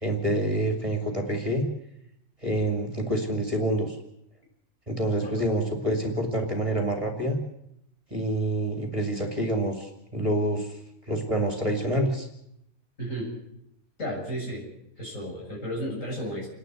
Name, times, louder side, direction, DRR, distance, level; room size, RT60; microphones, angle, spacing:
voice 1, 0.0-1.7 2.4-4.0 4.9-7.4 8.1-10.8 11.1-12.3, right 1 dB, 25° right, 3 dB, 2.8 m, -27 dB
voice 2, 13.0-13.3 14.0-14.7 15.0-16.5, equal, 65° left, -3 dB, 7.7 m, -33 dB
28.5 x 11.5 x 8.0 m, 0.76 s
omnidirectional pair, 1.4 m